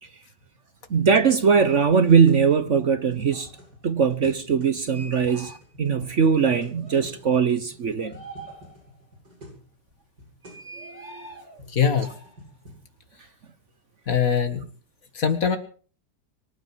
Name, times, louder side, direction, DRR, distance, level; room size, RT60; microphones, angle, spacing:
voice 1, 0.9-3.5 3.8-8.2 10.5-11.3, right 6 dB, 50° right, 1.2 m, -21 dB
sound 1, 1.6-9.6 9.9-10.0 10.2-10.6 11.3-12.8, left 1 dB, 75° right, 8.7 m, -46 dB
sound 2, 3.3-3.8 6.7-7.1 8.0-9.1 10.7-11.7 12.0-12.6 14.2-14.5, right 2 dB, 20° left, 3.2 m, -45 dB
voice 2, 11.7-12.1 14.1-14.6 15.1-15.6, left 7 dB, 55° left, 2.2 m, -22 dB
24.5 x 9.2 x 6.0 m
omnidirectional pair, 1.8 m